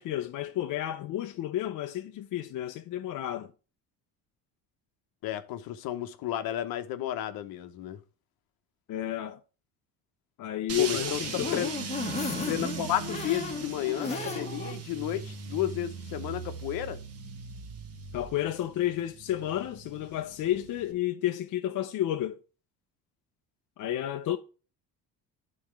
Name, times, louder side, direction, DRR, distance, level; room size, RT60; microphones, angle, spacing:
voice 1, 0.0-3.5 8.9-9.4 10.4-11.7 18.1-22.4 23.8-24.4, left 12 dB, 55° left, 0.6 m, -31 dB
voice 2, 5.2-8.0 10.8-11.7 12.5-17.0, left 12 dB, 70° left, 1.0 m, -32 dB
sound 1, 10.7-20.9, right 6 dB, 40° right, 1.1 m, -39 dB
sound 2, 10.8-14.8 15.2-15.3 15.6-15.7, left 4 dB, 20° left, 1.3 m, -35 dB
11.0 x 4.3 x 3.3 m
cardioid pair, 160°, 37 cm